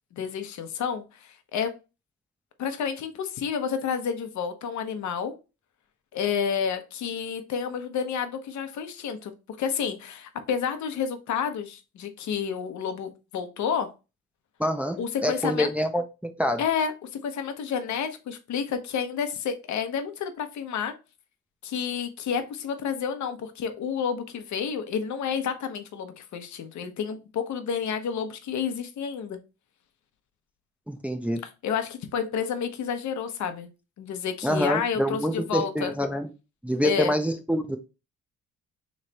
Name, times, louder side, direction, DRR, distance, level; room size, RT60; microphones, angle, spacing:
voice 1, 0.2-1.7 2.6-5.3 6.1-13.9 15.0-15.7 16.6-20.9 21.6-29.4 31.6-33.7 34.0-35.9 36.8-37.2, left 7 dB, 70° left, 0.9 m, -30 dB
voice 2, 14.6-16.6 30.9-31.4 34.4-36.3 36.6-37.8, equal, 5° right, 0.5 m, -26 dB
3.2 x 3.2 x 4.0 m
cardioid pair, 90°, 30 cm